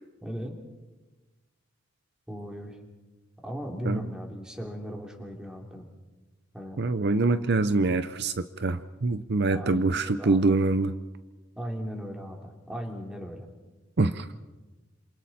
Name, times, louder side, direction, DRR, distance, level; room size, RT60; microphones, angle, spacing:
voice 1, 0.2-0.5 2.3-2.8 3.4-5.9 6.5-6.8 9.5-9.9 10.2-10.5 11.6-13.5, equal, 5° right, 1 dB, 3.0 m, -37 dB
voice 2, 6.8-11.0 14.0-14.3, right 3 dB, 55° right, 11 dB, 0.7 m, -25 dB
28.0 x 27.0 x 4.3 m, 1.2 s
head